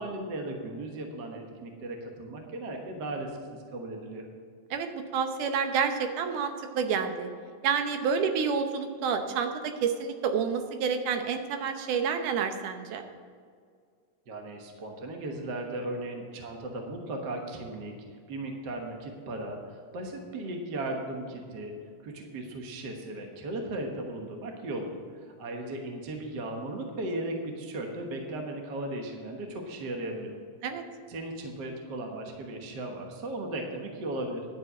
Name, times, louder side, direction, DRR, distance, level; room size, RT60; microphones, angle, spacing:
voice 1, 0.0-4.2 14.3-17.9 18.3-21.7 22.0-30.4 31.1-34.5, right 1 dB, 60° right, 2 dB, 1.1 m, -36 dB
voice 2, 4.7-7.3 7.6-9.5 9.8-13.0 30.6-30.8, right 6 dB, 75° right, 6 dB, 2.3 m, -29 dB
11.0 x 5.7 x 8.0 m, 2.1 s
omnidirectional pair, 3.8 m